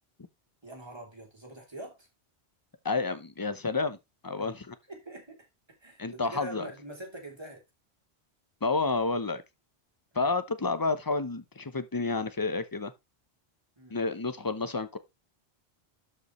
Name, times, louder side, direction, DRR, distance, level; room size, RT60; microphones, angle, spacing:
voice 1, 0.6-2.1 4.4-4.5 4.9-5.5 5.8-7.6 10.1-10.3 13.8-14.0, right 1 dB, 25° right, 3.1 m, -44 dB
voice 2, 2.8-4.0 4.2-4.8 6.0-6.7 8.6-9.4 10.1-12.9 13.9-15.0, left 3 dB, 20° left, 0.7 m, -30 dB
12.0 x 5.4 x 3.1 m
omnidirectional pair, 1.1 m